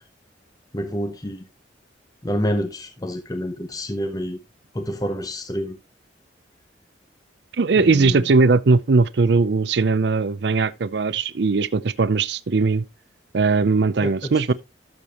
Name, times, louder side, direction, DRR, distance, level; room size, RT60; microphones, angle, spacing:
voice 1, 0.7-1.4 2.2-4.4 4.7-5.8 7.8-8.2 14.0-14.5, equal, 20° left, 0.7 m, -28 dB
voice 2, 7.5-12.8 13.3-14.5, right 4 dB, 65° right, 0.5 m, -19 dB
12.5 x 6.7 x 2.9 m
head